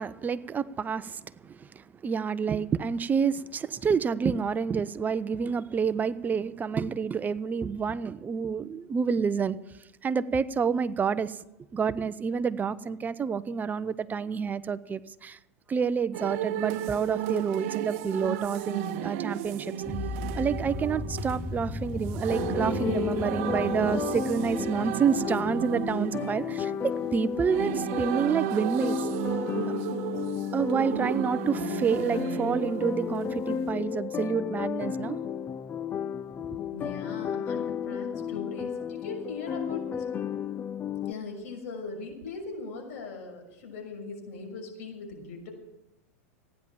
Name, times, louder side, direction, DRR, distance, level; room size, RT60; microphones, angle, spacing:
voice 1, 0.0-9.6 10.0-11.4 11.7-15.4 15.7-19.7 20.3-29.0 30.5-35.2 36.4-36.5, right 6 dB, 20° right, 15 dB, 0.7 m, -28 dB
sound 1, 16.1-33.7, right 11 dB, 60° right, 1.0 m, -34 dB
sound 2, 19.8-25.9, left 3 dB, 10° left, 0.9 m, -37 dB
sound 3, 22.3-41.1, left 8 dB, 25° left, 0.5 m, -33 dB
voice 2, 36.7-40.0 41.1-45.5, left 4 dB, 60° left, 2 dB, 6.3 m, -40 dB
15.5 x 10.0 x 7.2 m, 0.93 s
hypercardioid pair, 105°, 8 cm